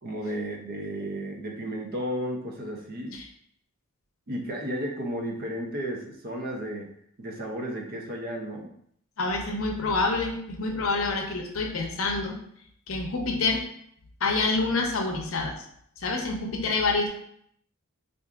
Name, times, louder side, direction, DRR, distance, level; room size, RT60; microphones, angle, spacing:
voice 1, 0.0-3.2 4.3-6.9 7.2-8.7, right 1 dB, 45° right, 1 dB, 0.6 m, -33 dB
voice 2, 9.2-12.4 12.9-13.6 14.2-15.6 16.0-17.1, left 3 dB, 65° left, 1 dB, 0.7 m, -27 dB
4.6 x 2.5 x 2.3 m, 0.68 s
head